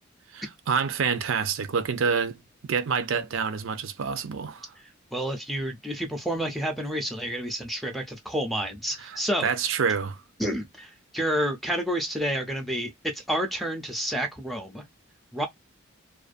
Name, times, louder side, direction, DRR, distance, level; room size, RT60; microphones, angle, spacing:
voice 1, 0.3-2.4 2.6-4.7 9.0-10.2, right 6 dB, 75° right, 0.4 m, -27 dB
voice 2, 5.1-9.5 10.4-14.8 15.3-15.5, equal, ahead, 0.4 m, -29 dB
2.5 x 2.2 x 2.4 m
head